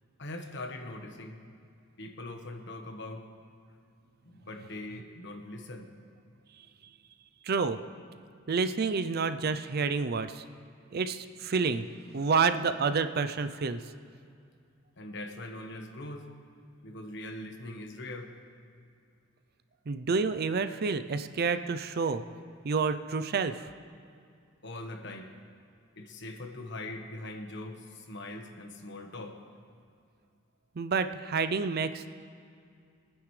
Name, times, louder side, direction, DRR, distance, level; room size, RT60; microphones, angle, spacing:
voice 1, 0.2-1.4 2.0-3.3 4.2-5.9 15.0-16.3 16.8-18.3 24.6-25.3 26.0-29.4, left 2 dB, 60° left, 4 dB, 1.3 m, -41 dB
voice 2, 7.4-7.8 8.5-10.4 10.9-11.9 12.1-13.8 19.9-22.2 22.6-23.7 30.8-32.1, right 5 dB, 50° right, 11 dB, 0.5 m, -29 dB
25.0 x 9.7 x 3.3 m, 2.3 s
head